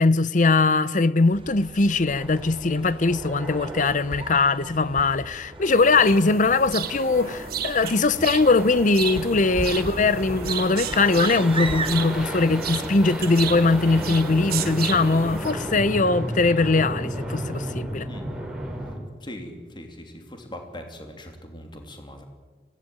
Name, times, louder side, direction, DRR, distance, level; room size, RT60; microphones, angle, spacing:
voice 1, 0.0-18.1, left 3 dB, 45° left, 0.8 m, -21 dB
sound 1, 1.3-12.7, right 3 dB, 30° right, 1.1 m, -37 dB
sound 2, 2.1-19.0, right 1 dB, 5° right, 5.1 m, -34 dB
sound 3, 5.7-15.5, right 9 dB, 60° right, 1.2 m, -34 dB
voice 2, 19.2-22.2, equal, 25° left, 3.0 m, -41 dB
24.0 x 17.5 x 9.0 m
head